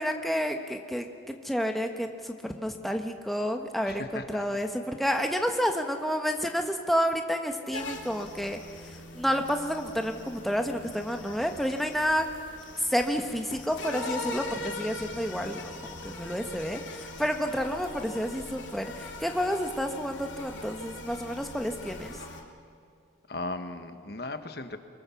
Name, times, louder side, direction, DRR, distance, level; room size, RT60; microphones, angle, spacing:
voice 1, 0.0-8.6 8.9-12.3 12.8-22.2, equal, ahead, 4 dB, 1.2 m, -30 dB
voice 2, 3.8-4.4 23.3-24.8, left 2 dB, 55° left, 8 dB, 1.2 m, -37 dB
sound 1, 7.7-22.4, left 2 dB, 85° left, 2.6 m, -41 dB
23.5 x 23.5 x 7.1 m, 2.3 s
head